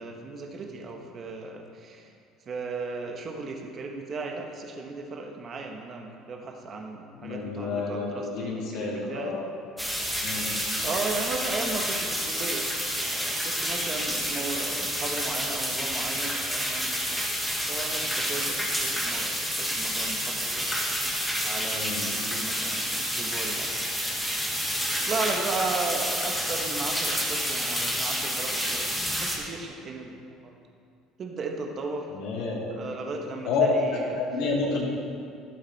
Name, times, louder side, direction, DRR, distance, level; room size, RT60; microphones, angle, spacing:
voice 1, 0.0-2.1 2.4-9.3 10.8-12.7 12.9-17.2 17.7-20.7 21.4-23.9 25.1-30.5 31.2-32.1 32.7-34.2 34.7-34.8, right 3 dB, 35° right, 2 dB, 1.2 m, -36 dB
voice 2, 7.1-9.4 10.2-10.5 21.7-22.1 32.1-32.7 33.4-33.7 34.2-34.8, left 4 dB, 75° left, -4 dB, 3.2 m, -29 dB
sound 1, 9.8-29.4, equal, ahead, 1.7 m, -29 dB
12.5 x 12.0 x 4.2 m, 2.4 s
cardioid pair, 150°, 0 cm